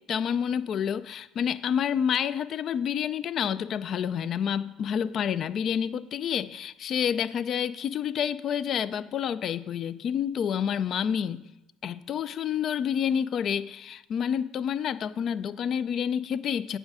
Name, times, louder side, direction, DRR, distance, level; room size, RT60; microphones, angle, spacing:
voice 1, 0.1-11.4 11.8-16.8, left 8 dB, 55° left, 16 dB, 0.4 m, -28 dB
8.7 x 6.3 x 4.8 m, 0.94 s
supercardioid pair, 85°, 0 cm